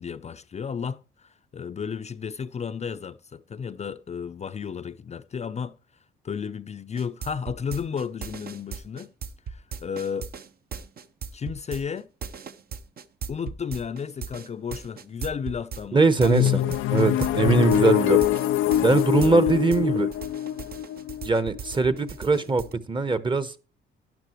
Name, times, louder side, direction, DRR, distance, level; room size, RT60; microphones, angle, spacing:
voice 1, 0.0-5.7 6.2-9.1 9.5-10.3 11.3-12.1 13.3-17.0 19.2-19.5, left 6 dB, 35° left, 0.5 m, -33 dB
sound 1, 7.0-19.8 20.1-22.7, right 6 dB, 50° right, 0.8 m, -37 dB
voice 2, 15.9-18.2 18.8-20.1 21.2-23.6, right 3 dB, 25° right, 0.9 m, -22 dB
sound 2, 16.2-22.0, left 13 dB, 90° left, 0.4 m, -24 dB
12.0 x 9.8 x 3.0 m
cardioid pair, 90°, 20 cm